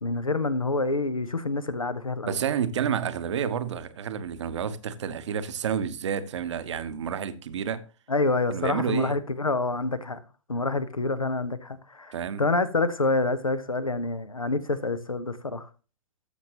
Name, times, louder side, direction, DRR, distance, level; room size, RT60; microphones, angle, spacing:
voice 1, 0.0-2.4 8.1-10.2 10.5-15.7, left 3 dB, 90° left, 0.9 m, -27 dB
voice 2, 2.2-7.8 8.5-9.2 12.1-12.4, right 8 dB, 60° right, 0.9 m, -30 dB
13.5 x 6.2 x 2.9 m
figure-of-eight pair, 110°, 17 cm